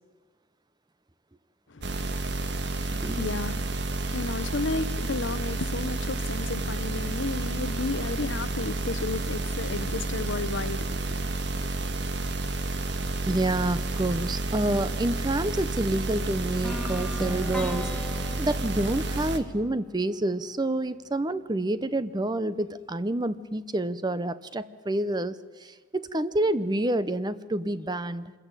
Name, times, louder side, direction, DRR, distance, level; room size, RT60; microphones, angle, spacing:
voice 1, 1.7-11.2, left 3 dB, 70° left, 0.9 m, -33 dB
sound 1, 1.8-19.4, right 2 dB, 60° right, 1.5 m, -30 dB
voice 2, 2.9-3.3 13.3-28.3, right 1 dB, 20° right, 0.7 m, -28 dB
sound 2, 16.6-20.6, left 1 dB, 5° left, 1.4 m, -38 dB
26.0 x 14.5 x 9.0 m
head